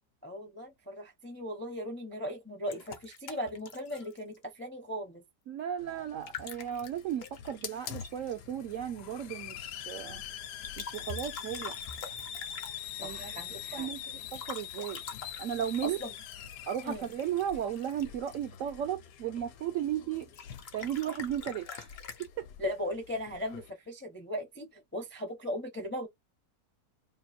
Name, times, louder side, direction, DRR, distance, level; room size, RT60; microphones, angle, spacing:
voice 1, 0.2-5.2 13.0-13.9 15.8-16.1 16.8-17.1 22.6-26.1, equal, 15° left, 0.4 m, -38 dB
sound 1, 2.7-4.4 6.1-8.4 10.6-13.0 14.2-18.8 20.2-22.3, left 5 dB, 55° left, 0.7 m, -45 dB
voice 2, 5.5-10.2 10.8-11.8 13.0-15.0 15.4-16.0 16.7-20.3 20.7-21.9 22.4-22.5, right 10 dB, 75° right, 0.7 m, -35 dB
Hiss, 5.8-23.7, left 9 dB, 75° left, 1.2 m, -45 dB
2.9 x 2.5 x 4.1 m
omnidirectional pair, 1.9 m